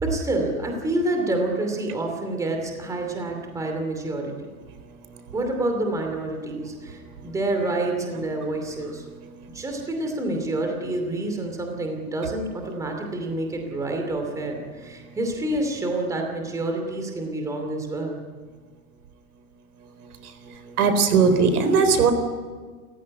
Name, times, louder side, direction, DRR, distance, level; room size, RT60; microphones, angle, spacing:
voice 1, 0.0-4.3 5.3-9.1 9.5-18.2, right 2 dB, 5° right, 3 dB, 2.6 m, -28 dB
voice 2, 20.8-22.1, right 5 dB, 85° right, 10 dB, 4.2 m, -18 dB
29.5 x 15.5 x 9.7 m, 1.5 s
supercardioid pair, 170°, 43 cm